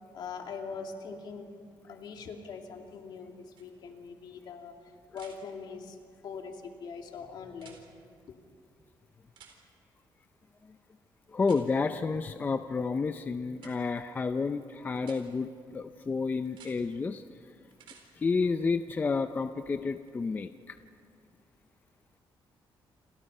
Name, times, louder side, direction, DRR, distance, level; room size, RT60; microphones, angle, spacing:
voice 1, 0.1-1.5 1.8-4.7 5.1-6.0 6.2-7.8 8.3-8.4, left 5 dB, 60° left, 3 dB, 2.7 m, -42 dB
sound 1, 3.6-3.7 5.1-5.4 7.5-7.8 9.3-9.6 11.4-11.6 13.6-13.7 15.0-15.2 16.4-16.7 17.7-18.0 20.1-20.2, right 7 dB, 75° right, 4.2 m, -53 dB
voice 2, 11.3-17.2 18.2-20.8, left 4 dB, 20° left, 9 dB, 0.5 m, -30 dB
29.0 x 27.0 x 5.5 m, 2.2 s
cardioid pair, 180°, 8 cm